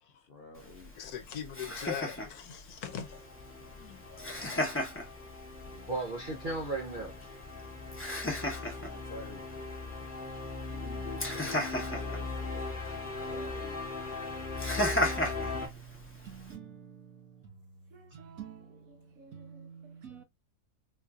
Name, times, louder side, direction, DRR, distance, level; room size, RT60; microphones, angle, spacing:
voice 1, 0.3-0.9 8.6-9.5 10.7-12.8 13.1-13.8, left 4 dB, 55° left, 0.7 m, -48 dB
Laughter, 0.6-16.6, left 1 dB, 10° left, 0.7 m, -37 dB
voice 2, 1.0-3.3 3.7-4.8, left 8 dB, 75° left, 1.2 m, -42 dB
sound 1, 2.8-15.7, left 3 dB, 35° left, 1.1 m, -40 dB
voice 3, 5.7-7.1 13.2-13.7, right 2 dB, 50° right, 0.6 m, -36 dB
voice 4, 15.5-20.2, right 8 dB, 65° right, 1.3 m, -49 dB
4.3 x 2.6 x 2.3 m
omnidirectional pair, 1.7 m